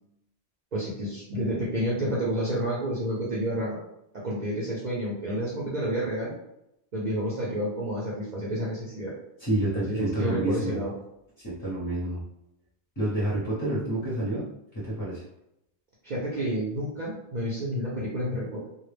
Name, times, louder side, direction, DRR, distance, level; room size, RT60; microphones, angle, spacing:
voice 1, 0.7-3.8 4.1-6.3 6.9-9.1 9.7-10.9 16.0-18.7, equal, 50° right, -6 dB, 0.6 m, -30 dB
voice 2, 9.4-10.8 11.4-12.2 13.0-14.5 14.7-15.2, right 1 dB, 20° left, -9 dB, 0.7 m, -28 dB
2.2 x 2.0 x 3.2 m, 0.83 s
omnidirectional pair, 1.1 m